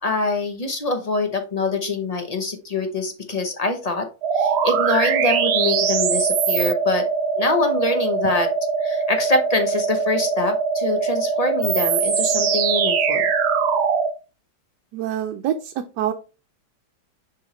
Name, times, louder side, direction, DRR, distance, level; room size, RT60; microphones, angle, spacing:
voice 1, 0.0-4.1 4.3-7.1 7.4-8.5 8.8-13.3, left 2 dB, 35° left, 6 dB, 0.7 m, -24 dB
sound 1, 4.2-14.1, right 5 dB, 60° right, 0.7 m, -21 dB
voice 2, 14.9-16.1, right 10 dB, 80° right, 6 dB, 1.2 m, -26 dB
6.3 x 4.9 x 3.1 m, 0.32 s
omnidirectional pair, 1.8 m